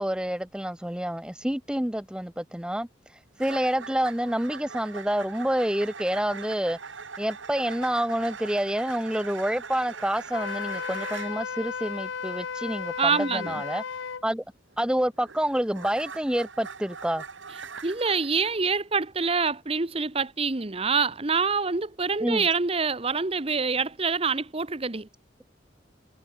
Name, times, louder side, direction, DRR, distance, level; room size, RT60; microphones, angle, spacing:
voice 1, 0.0-6.8 7.2-13.8 14.2-14.4 14.8-17.2 22.2-22.5, equal, 5° right, 0.7 m, -28 dB
sound 1, 3.4-11.4 14.7-18.6, right 5 dB, 85° right, 1.8 m, -41 dB
Wind instrument woodwind instrument, 10.3-14.2, left 6 dB, 80° left, 0.7 m, -34 dB
voice 2, 13.0-13.5 17.8-25.1, right 5 dB, 30° right, 0.9 m, -26 dB
head